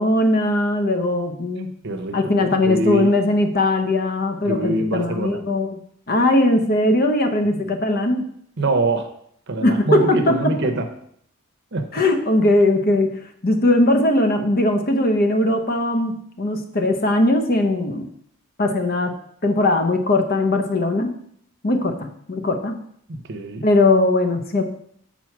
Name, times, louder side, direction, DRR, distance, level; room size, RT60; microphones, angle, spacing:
voice 1, 0.0-1.7 2.1-5.8 6.1-8.3 9.6-10.6 11.9-18.1 18.6-19.1 19.4-21.1 21.6-22.8 23.6-24.6, left 1 dB, 45° left, 6 dB, 0.8 m, -19 dB
voice 2, 1.8-3.1 4.5-5.4 8.6-9.1 9.5-10.9 11.7-11.9 23.1-23.6, right 2 dB, 55° right, 6 dB, 0.9 m, -24 dB
6.2 x 4.2 x 5.9 m, 0.67 s
head